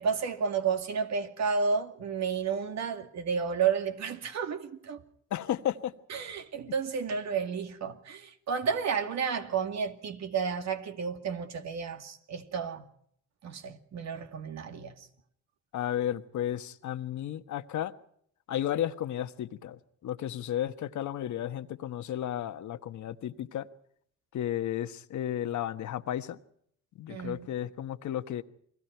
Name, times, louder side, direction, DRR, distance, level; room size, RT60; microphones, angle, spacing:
voice 1, 0.0-5.0 6.1-12.9 13.4-14.9 27.1-27.5, right 6 dB, 65° right, 2.4 m, -31 dB
voice 2, 5.3-5.9 15.7-17.9 18.5-23.7 24.3-26.4 27.0-28.4, left 11 dB, 70° left, 1.3 m, -33 dB
29.5 x 21.5 x 4.5 m
cardioid pair, 90°, 30 cm